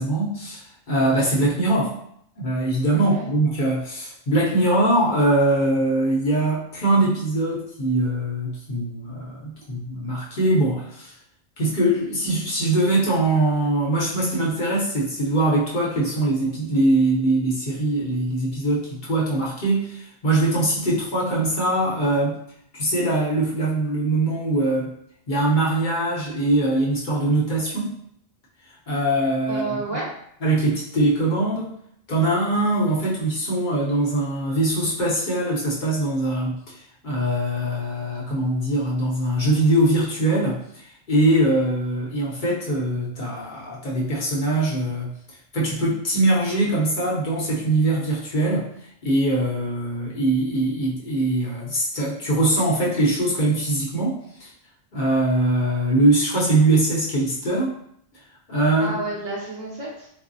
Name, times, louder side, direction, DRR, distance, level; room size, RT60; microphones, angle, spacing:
voice 1, 0.0-1.9 2.4-11.1 11.6-22.4 22.7-24.9 25.3-27.9 28.9-29.8 30.4-31.7 32.1-45.1 45.5-48.7 49.0-54.5 54.9-57.7 58.5-59.0, right 1 dB, 50° left, -6 dB, 0.9 m, -22 dB
voice 2, 2.9-3.2 29.5-30.1 58.8-60.1, right 3 dB, 50° right, -5 dB, 0.6 m, -30 dB
4.0 x 2.0 x 2.6 m, 0.70 s
omnidirectional pair, 1.1 m